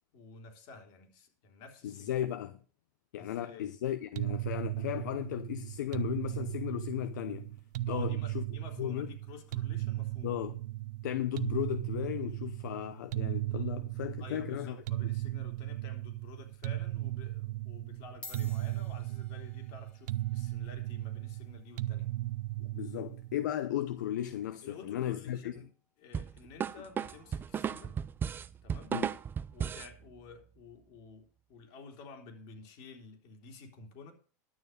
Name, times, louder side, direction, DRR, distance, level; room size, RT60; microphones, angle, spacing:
voice 1, 0.1-2.2 3.2-3.7 7.9-10.3 14.2-22.2 24.6-25.7 26.0-28.0 28.6-29.0 29.5-34.1, left 4 dB, 55° left, 3.4 m, -51 dB
voice 2, 1.8-2.6 3.1-7.6 7.9-8.4 8.8-9.1 10.2-10.6 11.0-14.8 22.7-25.5 28.9-29.1, left 12 dB, 85° left, 0.7 m, -35 dB
sound 1, 4.2-23.5, right 16 dB, 75° right, 0.6 m, -36 dB
sound 2, 16.6-16.9 17.7-17.8 18.1-26.8, left 3 dB, 10° left, 1.4 m, -57 dB
sound 3, 26.1-29.9, right 8 dB, 20° right, 0.5 m, -35 dB
11.0 x 6.9 x 6.6 m
supercardioid pair, 125°, 10 cm